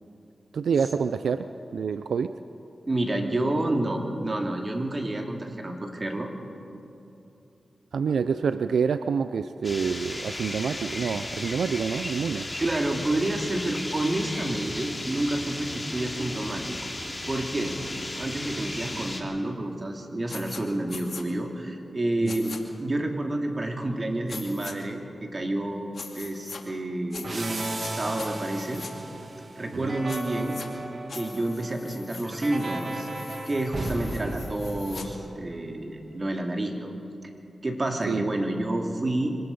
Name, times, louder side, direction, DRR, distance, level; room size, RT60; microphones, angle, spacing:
voice 1, 0.5-2.4 7.9-12.5 22.2-22.3 29.7-30.0 38.1-38.3, right 6 dB, 85° right, 11 dB, 0.5 m, -27 dB
voice 2, 2.9-6.3 12.6-16.9 17.3-17.8 18.2-22.5 22.8-28.8 29.6-30.6 31.1-33.1 33.4-36.9 37.6-39.4, right 1 dB, 40° right, 2 dB, 2.8 m, -29 dB
bosco-fiume vicino, 9.6-19.2, left 1 dB, 20° left, 2.8 m, -35 dB
sound 1, 20.3-20.6 20.9-21.2 22.3-22.6 24.3-24.7 25.9-26.6 27.1-27.9 28.2-28.9 30.1-30.7 31.1-35.1, left 4 dB, 70° left, 2.3 m, -42 dB
sound 2, 27.2-35.7, right 2 dB, 55° right, 2.1 m, -36 dB
25.5 x 19.0 x 5.4 m, 2.8 s
cardioid pair, 55°, 0 cm